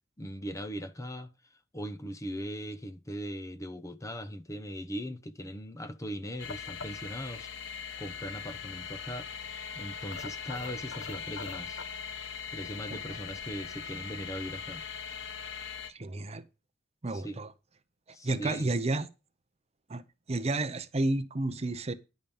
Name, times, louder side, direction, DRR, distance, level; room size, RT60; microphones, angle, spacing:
voice 1, 0.2-1.3 1.7-9.3 9.7-11.8 12.5-14.8 17.1-17.4 18.1-18.7, equal, 15° left, 0.7 m, -39 dB
sound 1, 6.4-15.9, left 6 dB, 75° left, 1.1 m, -40 dB
voice 2, 15.9-16.4 17.0-17.5 18.2-19.1 19.9-20.0 20.3-21.9, right 2 dB, 35° right, 0.7 m, -31 dB
10.5 x 5.2 x 7.1 m
head